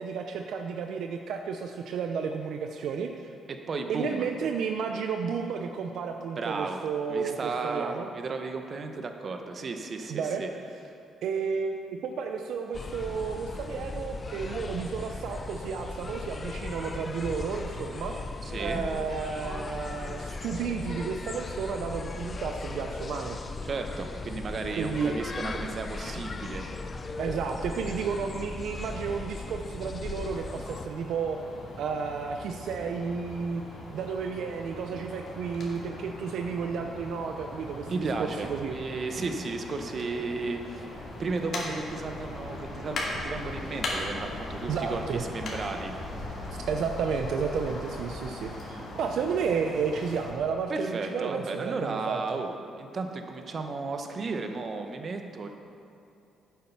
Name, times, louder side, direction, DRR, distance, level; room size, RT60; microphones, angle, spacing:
voice 1, 0.0-3.3 3.9-8.1 10.1-10.4 11.2-18.1 18.6-23.4 24.7-25.2 27.2-31.4 31.8-33.6 33.9-38.7 44.7-45.2 46.7-52.4, right 6 dB, 75° right, 4 dB, 0.5 m, -32 dB
voice 2, 3.5-4.3 6.4-6.8 7.1-10.5 18.4-18.8 23.6-26.7 37.9-46.0 50.7-55.5, right 3 dB, 45° right, 5 dB, 0.9 m, -34 dB
sound 1, 12.7-30.9, left 3 dB, 35° left, 0.6 m, -37 dB
sound 2, 30.3-50.3, left 2 dB, 55° left, 2.4 m, -39 dB
8.8 x 7.5 x 5.7 m, 2.8 s
cardioid pair, 90°, 0 cm